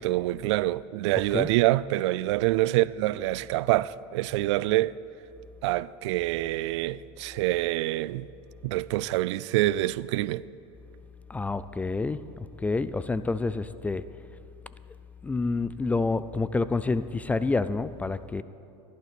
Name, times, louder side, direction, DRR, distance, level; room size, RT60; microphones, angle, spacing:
voice 1, 0.0-4.9 5.6-8.3 8.6-10.4, right 17 dB, 80° right, 0.4 m, -26 dB
voice 2, 11.3-14.1 15.2-18.4, left 3 dB, 10° left, 0.3 m, -28 dB
14.0 x 11.5 x 6.0 m
supercardioid pair, 130°, 15 cm